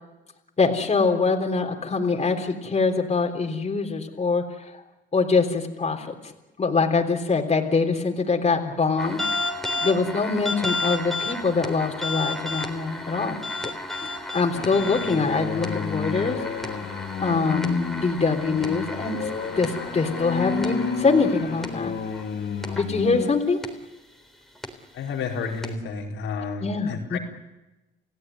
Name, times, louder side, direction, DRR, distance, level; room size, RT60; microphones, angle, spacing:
voice 1, 0.6-4.8 5.1-6.3 6.6-9.2 9.8-13.7 14.3-16.4 17.2-19.3 19.6-21.9 22.7-23.6 26.6-27.2, left 4 dB, 35° left, 2 dB, 3.7 m, -24 dB
sound 1, 9.0-22.2 22.6-22.9 23.6-23.7 24.6-24.7 25.6-25.7, left 2 dB, ahead, 3.7 m, -33 dB
sound 2, 14.5-23.3, left 5 dB, 60° left, 2.9 m, -31 dB
voice 2, 24.9-27.2, left 5 dB, 85° left, -1 dB, 4.5 m, -31 dB
29.5 x 16.5 x 9.5 m, 1.0 s
cardioid pair, 90°, 20 cm